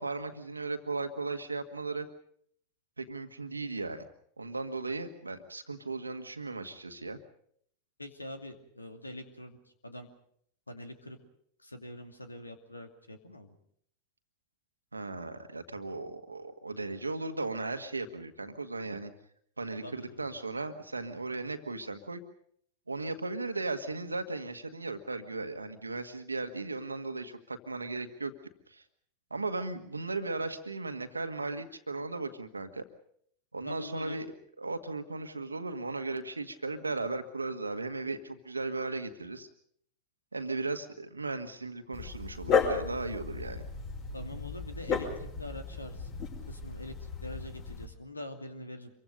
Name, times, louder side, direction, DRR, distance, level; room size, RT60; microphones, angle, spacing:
voice 1, 0.0-2.1 3.0-4.1 4.4-7.2 14.9-19.1 19.6-22.2 22.9-28.3 28.7-28.8 29.3-32.8 33.5-34.3 34.6-39.5 40.3-43.6, right 3 dB, 80° right, 8 dB, 1.7 m, -36 dB
voice 2, 8.0-9.6 9.8-10.1 10.7-11.2 11.6-13.5 19.8-20.3 33.6-34.2 44.1-46.1 46.5-48.9, left 1 dB, 80° left, 7 dB, 2.5 m, -44 dB
Dog, 41.9-47.8, left 5 dB, 40° left, 5.3 m, -34 dB
27.0 x 23.5 x 5.3 m, 0.66 s
figure-of-eight pair, 90°, 0 cm